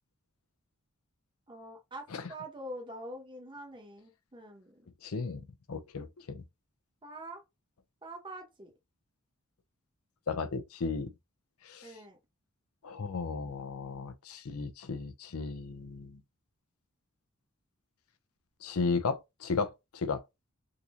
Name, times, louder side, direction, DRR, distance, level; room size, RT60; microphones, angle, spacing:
voice 1, 1.5-4.8 7.0-7.4 8.0-8.7 11.8-12.2, right 1 dB, 25° right, 1.1 m, -45 dB
voice 2, 5.0-5.4 5.7-6.4 10.3-11.1 11.6-11.9 12.8-16.2 18.6-20.2, left 4 dB, 90° left, 0.6 m, -35 dB
3.7 x 2.9 x 2.5 m
head